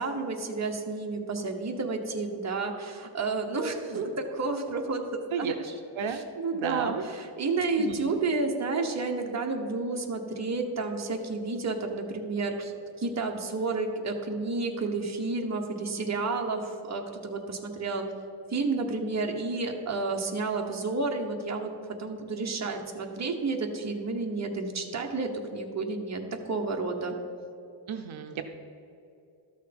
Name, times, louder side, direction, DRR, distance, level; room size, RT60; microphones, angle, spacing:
voice 1, 0.0-5.0 5.4-5.7 6.4-12.7 13.0-18.0 18.5-21.7 22.0-27.2, right 3 dB, 35° right, 2 dB, 1.0 m, -31 dB
voice 2, 6.5-7.1 7.8-8.2 27.9-28.4, right 7 dB, 75° right, 6 dB, 0.7 m, -33 dB
12.5 x 6.4 x 5.2 m, 2.7 s
wide cardioid pair, 175°, 48 cm